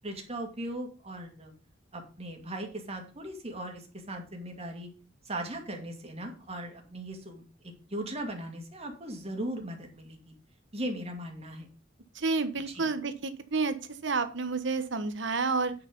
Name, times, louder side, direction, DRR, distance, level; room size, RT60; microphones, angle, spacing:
voice 1, 0.0-1.5 1.9-4.9 5.2-10.4 10.7-11.7 12.7-12.9, right 1 dB, 35° right, 3 dB, 2.4 m, -38 dB
voice 2, 12.1-13.8 14.0-15.7, right 4 dB, 65° right, 10 dB, 1.1 m, -30 dB
9.3 x 5.9 x 5.3 m, 0.38 s
head